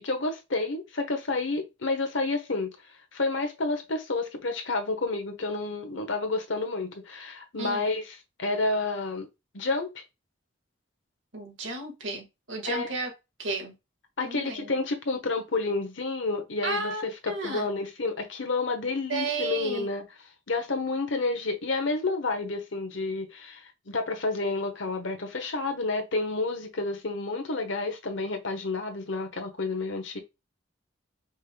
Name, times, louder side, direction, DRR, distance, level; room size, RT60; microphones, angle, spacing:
voice 1, 0.0-2.7 3.1-9.3 9.5-10.0 12.6-12.9 14.2-20.0 20.5-30.2, left 3 dB, 80° left, 1.2 m, -30 dB
voice 2, 11.3-13.1 13.4-13.7 14.2-14.7 16.6-17.7 19.1-19.9, right 3 dB, 80° right, 1.8 m, -33 dB
5.2 x 3.6 x 2.2 m
head